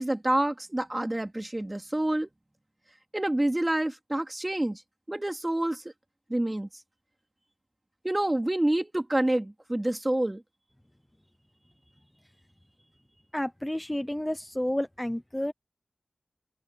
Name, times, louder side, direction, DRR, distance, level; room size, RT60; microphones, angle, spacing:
voice 1, 0.0-2.3 3.1-4.8 5.1-5.8 6.3-6.7 8.0-10.4, right 1 dB, 20° right, 2.8 m, -27 dB
voice 2, 13.3-15.5, left 1 dB, 10° left, 0.8 m, -30 dB
wide cardioid pair, 75°, 0 cm